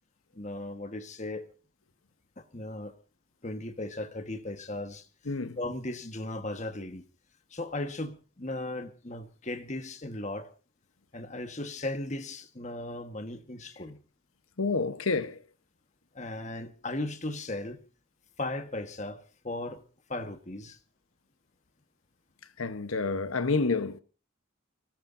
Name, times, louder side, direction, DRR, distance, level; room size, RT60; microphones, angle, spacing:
voice 1, 0.3-1.5 2.4-2.9 3.4-5.1 5.6-7.0 7.5-10.5 11.1-14.0 16.1-17.8 18.4-19.8 20.1-20.8, left 2 dB, 35° left, 1.4 m, -37 dB
voice 2, 5.2-5.6 14.6-15.4 22.6-24.0, left 4 dB, 85° left, 1.1 m, -29 dB
24.5 x 17.5 x 2.7 m
head